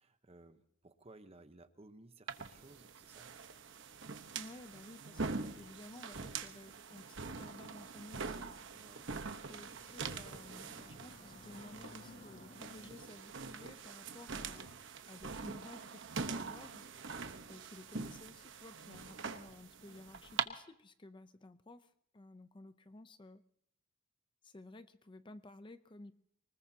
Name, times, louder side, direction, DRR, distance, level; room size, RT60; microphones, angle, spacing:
voice 1, 0.0-3.3 8.8-9.1 17.1-17.5, right 2 dB, 30° right, 9 dB, 0.9 m, -59 dB
sound 1, 2.3-20.4, right 5 dB, 60° right, 1.0 m, -44 dB
voice 2, 4.3-8.5 9.5-14.8 15.1-16.8 17.5-23.4 24.4-26.1, left 2 dB, 25° left, 11 dB, 0.5 m, -54 dB
sound 2, 8.0-13.0, left 2 dB, 40° left, 2.5 m, -58 dB
24.0 x 20.0 x 2.8 m, 0.71 s
head